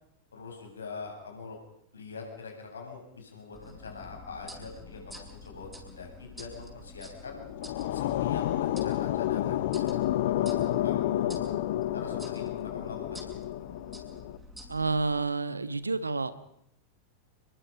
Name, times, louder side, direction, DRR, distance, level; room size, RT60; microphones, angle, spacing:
voice 1, 0.3-1.6 1.9-7.4 7.9-10.1 10.4-11.4 11.9-13.2, left 4 dB, 70° left, 1 dB, 7.9 m, -43 dB
sound 1, 3.5-15.2, left 1 dB, 5° right, 6.8 m, -48 dB
sound 2, 7.2-14.4, left 13 dB, 55° left, 1.0 m, -30 dB
voice 2, 14.7-16.3, right 3 dB, 80° right, 14 dB, 1.3 m, -29 dB
30.0 x 22.5 x 5.2 m, 0.74 s
figure-of-eight pair, 90°, 0 cm